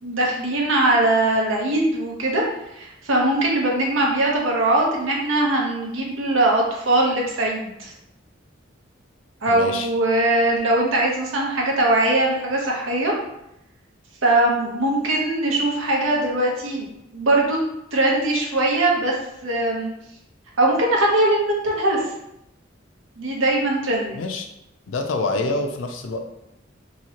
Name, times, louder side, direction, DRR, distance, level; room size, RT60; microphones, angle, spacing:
voice 1, 0.0-2.4 2.7-7.9 9.4-13.1 14.2-16.9 17.1-17.6 17.9-19.1 19.4-19.9 20.6-22.1 23.2-24.2, right 1 dB, 90° right, -1 dB, 0.8 m, -21 dB
voice 2, 9.5-9.9 24.1-24.5 24.9-26.2, left 2 dB, 80° left, 5 dB, 0.4 m, -26 dB
2.9 x 2.7 x 2.8 m, 0.82 s
head